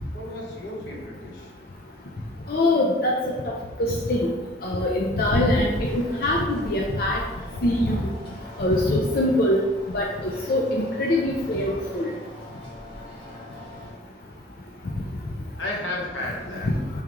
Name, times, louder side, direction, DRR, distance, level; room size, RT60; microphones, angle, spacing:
voice 1, 0.1-1.5 15.6-16.7, left 1 dB, 85° left, -2 dB, 1.0 m, -33 dB
voice 2, 2.5-3.4 3.8-4.3 4.6-7.2 7.6-8.1 8.6-9.6 9.9-12.1, left 1 dB, 55° left, -2 dB, 0.5 m, -23 dB
sound 1, 5.2-13.9, equal, 25° left, 1.5 m, -40 dB
4.6 x 3.6 x 3.0 m, 1.2 s
head